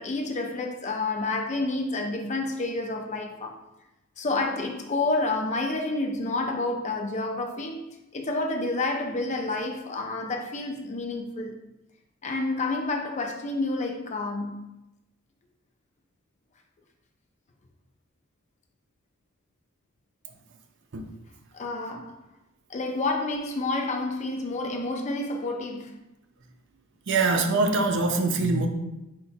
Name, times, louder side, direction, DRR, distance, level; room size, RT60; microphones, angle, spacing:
voice 1, 0.0-3.6 4.2-7.9 8.1-11.6 12.2-14.6 21.5-22.2 22.7-26.0, left 2 dB, 35° left, 0.4 m, -29 dB
voice 2, 27.1-28.7, right 3 dB, 55° right, 0.5 m, -23 dB
4.7 x 2.2 x 4.0 m
head